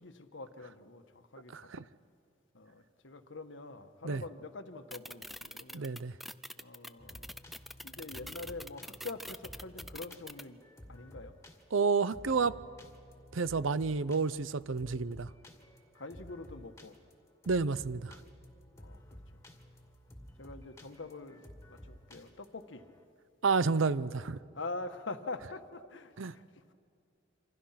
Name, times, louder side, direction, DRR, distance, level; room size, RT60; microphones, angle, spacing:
voice 1, 0.0-1.9 2.5-5.9 6.6-7.3 7.8-10.6 10.9-11.4 15.9-17.0 18.8-19.2 20.4-21.4 21.7-22.8 24.5-26.6, left 3 dB, 70° left, 1.4 m, -45 dB
voice 2, 1.5-1.8 4.0-4.2 5.7-6.1 11.7-12.6 13.3-15.3 17.5-18.2 23.4-24.4 26.2-26.3, right 4 dB, 90° right, 0.7 m, -30 dB
sound 1, 4.9-10.4, equal, ahead, 0.5 m, -44 dB
sound 2, 7.0-23.0, equal, 15° left, 2.1 m, -53 dB
27.5 x 26.0 x 5.9 m
head